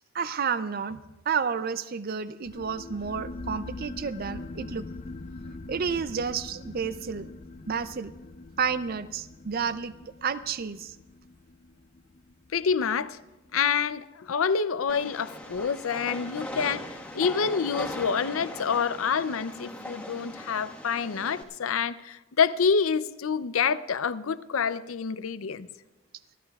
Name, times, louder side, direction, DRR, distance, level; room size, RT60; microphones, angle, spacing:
voice 1, 0.1-1.0 1.3-4.8 5.7-7.3 7.7-8.1 8.6-9.9 10.2-10.9, right 6 dB, 45° right, 0.5 m, -30 dB
sound 1, 2.5-13.6, left 2 dB, 35° left, 0.4 m, -43 dB
voice 2, 12.5-13.2 13.5-25.7, left 6 dB, 90° left, 0.5 m, -27 dB
Train, 14.9-21.4, left 1 dB, 5° left, 1.4 m, -39 dB
28.0 x 13.5 x 2.4 m
head